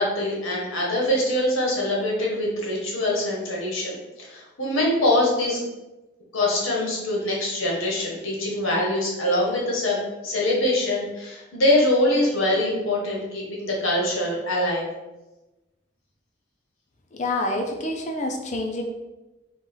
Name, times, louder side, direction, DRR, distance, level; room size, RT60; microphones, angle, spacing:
voice 1, 0.0-5.6 6.3-14.9, left 1 dB, 85° left, -3 dB, 1.3 m, -24 dB
voice 2, 17.1-18.8, left 2 dB, 35° left, 3 dB, 0.5 m, -27 dB
4.0 x 2.4 x 3.9 m, 1.0 s
head